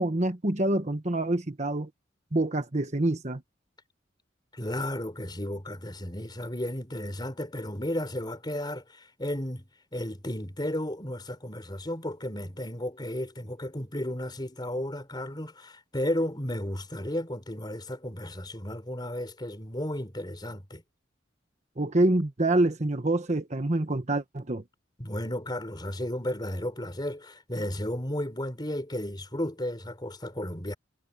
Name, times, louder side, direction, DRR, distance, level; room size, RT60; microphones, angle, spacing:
voice 1, 0.0-1.9 2.3-3.4 21.8-24.6, right 2 dB, 40° right, 1.3 m, -26 dB
voice 2, 4.5-9.6 9.9-20.8 25.0-30.7, left 1 dB, 25° left, 4.3 m, -33 dB
head